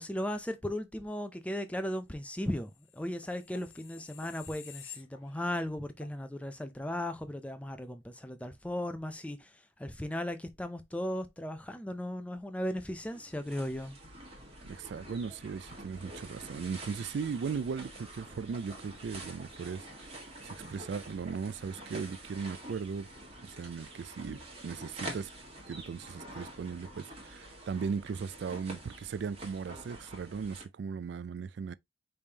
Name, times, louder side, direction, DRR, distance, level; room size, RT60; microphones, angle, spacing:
voice 1, 0.0-9.5 9.8-14.0, left 1 dB, 5° left, 0.5 m, -36 dB
sound 1, 2.7-5.6 6.0-6.2, left 8 dB, 85° left, 1.1 m, -51 dB
sound 2, 12.7-30.6, right 1 dB, 30° right, 1.6 m, -47 dB
voice 2, 14.7-20.1 20.4-23.1 23.4-25.3 25.7-31.7, right 5 dB, 65° right, 0.3 m, -38 dB
5.2 x 3.4 x 2.8 m
head